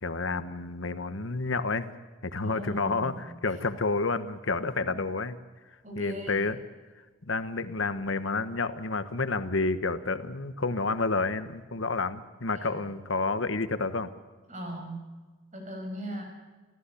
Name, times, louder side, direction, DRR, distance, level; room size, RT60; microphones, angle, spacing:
voice 1, 0.0-1.9 2.2-3.1 3.4-5.4 6.0-6.5 7.2-14.1, left 3 dB, 80° left, 11 dB, 1.2 m, -29 dB
voice 2, 2.3-3.2 4.8-4.9 5.8-6.5 12.5-12.8 14.5-15.0 15.5-16.2, equal, 35° right, 2 dB, 6.2 m, -39 dB
27.0 x 15.0 x 8.5 m, 1.3 s
head